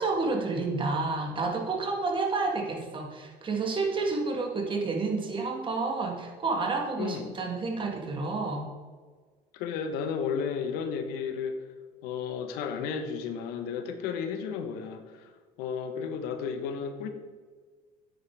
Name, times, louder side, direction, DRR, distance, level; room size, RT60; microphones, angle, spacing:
voice 1, 0.0-8.7, right 3 dB, 30° right, 2 dB, 1.8 m, -30 dB
voice 2, 7.0-7.3 9.5-11.6 12.0-15.3 15.6-17.1, left 6 dB, 75° left, 8 dB, 1.1 m, -33 dB
9.0 x 8.9 x 3.4 m, 1.5 s
supercardioid pair, 100°, 16 cm